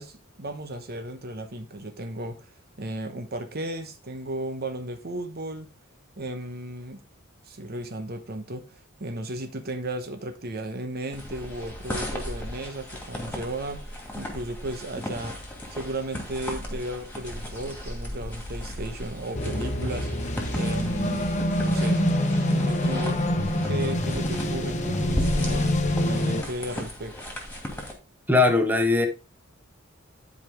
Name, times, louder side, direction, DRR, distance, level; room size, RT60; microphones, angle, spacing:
voice 1, 0.0-2.5 2.8-5.7 6.2-7.0 7.5-8.6 9.0-15.4 15.7-20.1 20.5-21.3 21.6-22.0 22.5-23.2 23.6-27.1, right 1 dB, 50° right, 1.0 m, -35 dB
sound 1, 11.1-27.9, equal, 10° left, 2.4 m, -36 dB
sound 2, 19.3-26.4, left 1 dB, 35° left, 1.0 m, -25 dB
voice 2, 28.3-29.1, left 3 dB, 10° right, 1.1 m, -19 dB
11.0 x 5.0 x 3.5 m
head